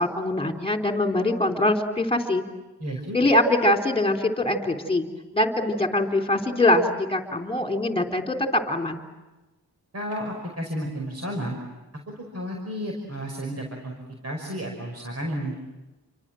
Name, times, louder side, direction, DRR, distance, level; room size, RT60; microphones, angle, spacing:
voice 1, 0.0-2.4 3.1-5.1 5.3-9.0, left 1 dB, 15° left, 3 dB, 3.6 m, -23 dB
voice 2, 2.8-3.2 9.9-11.6 12.2-13.9 14.2-15.5, equal, 40° right, 1 dB, 5.7 m, -32 dB
29.5 x 24.5 x 7.8 m, 1.1 s
cardioid pair, 75°, 38 cm